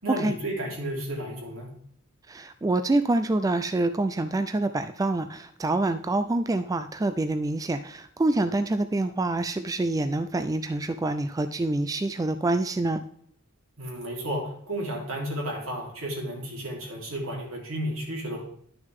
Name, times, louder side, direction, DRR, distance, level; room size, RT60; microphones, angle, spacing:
voice 1, 0.0-1.7 13.8-18.4, right 1 dB, 75° right, -2 dB, 3.3 m, -32 dB
voice 2, 2.3-13.0, right 2 dB, 15° right, 10 dB, 0.3 m, -26 dB
11.0 x 6.4 x 3.5 m, 0.63 s
head